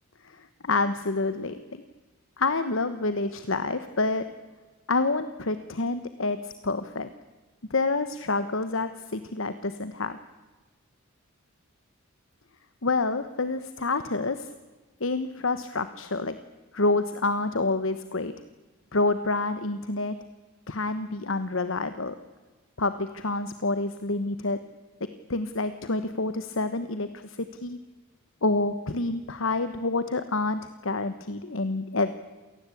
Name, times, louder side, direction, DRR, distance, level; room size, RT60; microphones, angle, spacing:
voice 1, 0.2-1.8 2.4-4.3 4.9-7.1 7.7-10.2 12.8-14.5 15.0-16.4 16.7-18.3 18.9-20.2 20.7-22.1 22.8-24.6 25.3-27.8 28.4-32.1, left 3 dB, 65° left, 11 dB, 1.2 m, -28 dB
27.5 x 18.5 x 8.6 m, 1.3 s
head